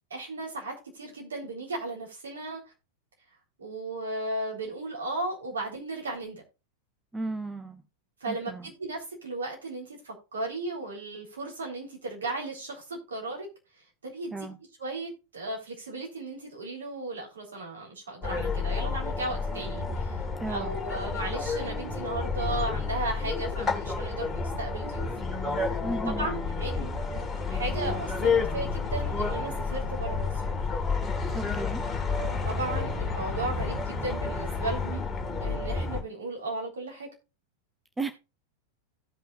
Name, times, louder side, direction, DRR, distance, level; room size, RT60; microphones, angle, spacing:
voice 1, 0.1-2.6 3.6-6.4 8.2-13.5 14.0-14.3 14.8-25.1 25.7-25.8 26.2-26.9 27.5-30.3 32.4-35.0 35.4-37.1, right 2 dB, 70° right, 3.9 m, -35 dB
voice 2, 7.1-7.8 8.3-8.7 14.3-14.6 20.4-20.8 25.8-26.3 31.3-31.9 38.0-38.1, right 2 dB, 10° right, 0.8 m, -34 dB
sound 1, 18.2-36.0, left 4 dB, 15° left, 2.6 m, -30 dB
16.5 x 5.7 x 2.5 m
figure-of-eight pair, 90°, 0 cm